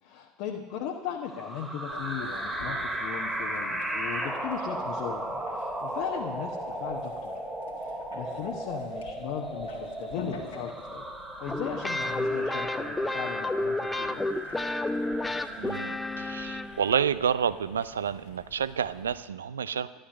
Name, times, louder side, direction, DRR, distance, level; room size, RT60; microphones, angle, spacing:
voice 1, 0.0-7.3 7.7-11.0 11.4-14.4, left 8 dB, 55° left, 1 dB, 1.1 m, -37 dB
sound 1, 1.3-16.9, right 1 dB, 10° right, 2.2 m, -36 dB
sound 2, 1.9-19.2, left 3 dB, 75° left, 1.8 m, -49 dB
sound 3, 11.5-17.1, left 2 dB, 10° left, 0.6 m, -31 dB
voice 2, 15.6-20.0, right 8 dB, 75° right, 16 dB, 0.4 m, -29 dB
11.5 x 11.5 x 6.5 m, 1.3 s
figure-of-eight pair, 70°, 0 cm